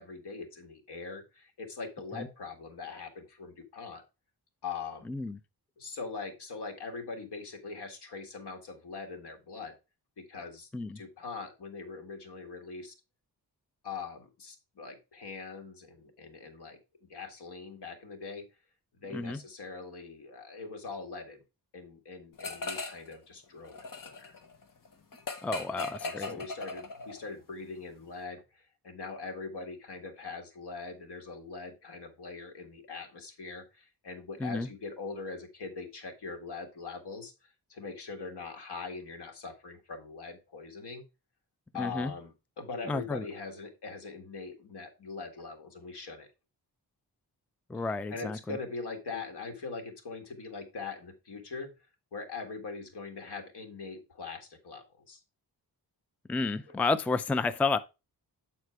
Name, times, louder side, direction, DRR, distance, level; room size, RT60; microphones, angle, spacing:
voice 1, 0.0-4.0 4.6-5.1 5.8-9.7 10.2-10.7 11.0-12.9 13.8-16.8 17.1-18.5 19.0-21.4 21.7-24.3 25.6-37.3 37.7-41.0 41.7-46.3 47.7-51.7 52.1-55.2 56.7-56.8, left 4 dB, 80° left, 1.9 m, -42 dB
voice 2, 5.1-5.4 10.7-11.0 19.1-19.4 25.4-26.3 34.4-34.7 41.8-42.1 42.9-43.2 47.7-48.6 56.3-57.8, left 3 dB, 5° left, 0.3 m, -31 dB
sound 1, 22.4-23.1 23.4-27.3, left 3 dB, 55° left, 1.2 m, -39 dB
8.2 x 4.3 x 4.5 m
wide cardioid pair, 145°, 40 cm